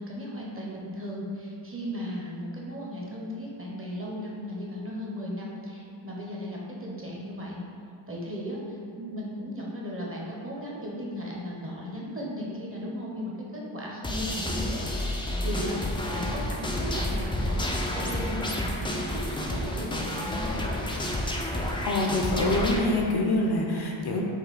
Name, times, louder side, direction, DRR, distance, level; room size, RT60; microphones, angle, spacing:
voice 1, 0.0-7.6 8.1-8.6 8.9-15.8 16.1-20.5, equal, 25° right, -3 dB, 0.8 m, -36 dB
sound 1, 14.0-22.8, left 1 dB, 10° left, 0.4 m, -30 dB
voice 2, 21.8-24.2, left 1 dB, 55° left, 0 dB, 0.6 m, -25 dB
5.5 x 2.2 x 4.0 m, 2.4 s
wide cardioid pair, 85°, 48 cm